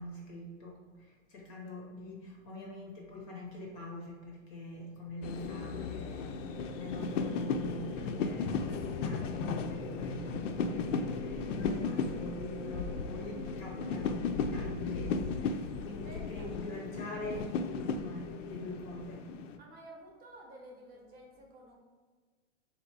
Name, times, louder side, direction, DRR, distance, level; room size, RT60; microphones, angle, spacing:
voice 1, 0.0-19.3, left 1 dB, 30° left, -1 dB, 0.5 m, -44 dB
sound 1, 4.4-16.6, right 3 dB, 70° right, 0.6 m, -49 dB
sound 2, 5.2-19.6, left 5 dB, 75° left, 0.5 m, -35 dB
voice 2, 16.0-16.5 19.6-21.7, right 1 dB, 25° right, -1 dB, 0.7 m, -52 dB
3.8 x 2.7 x 4.5 m, 1.4 s
hypercardioid pair, 150°, 38 cm